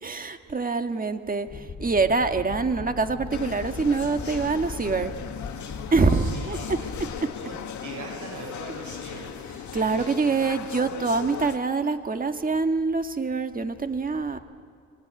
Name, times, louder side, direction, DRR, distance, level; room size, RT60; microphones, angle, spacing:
voice 1, 0.0-5.1 5.9-7.3 9.7-14.4, right 4 dB, 30° right, 7 dB, 1.8 m, -25 dB
sound 1, 1.5-7.2, left 4 dB, 40° left, 2.3 m, -39 dB
sound 2, 3.3-11.6, left 9 dB, 75° left, 1.9 m, -37 dB
voice 2, 5.6-10.5 13.9-14.0, right 4 dB, 75° right, 1 dB, 6.8 m, -43 dB
26.0 x 22.5 x 9.6 m, 2.2 s
cardioid pair, 90°, 30 cm